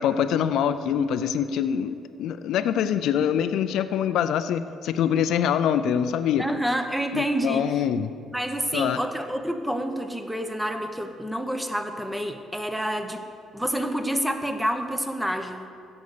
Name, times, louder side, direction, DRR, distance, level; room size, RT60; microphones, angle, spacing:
voice 1, 0.0-6.4 7.1-8.1 8.7-9.0, left 8 dB, 75° left, 11 dB, 0.4 m, -24 dB
voice 2, 6.4-7.8 8.3-13.2 13.5-15.7, equal, 5° right, 6 dB, 0.9 m, -28 dB
15.5 x 5.4 x 6.5 m, 2.4 s
cardioid pair, 90°, 0 cm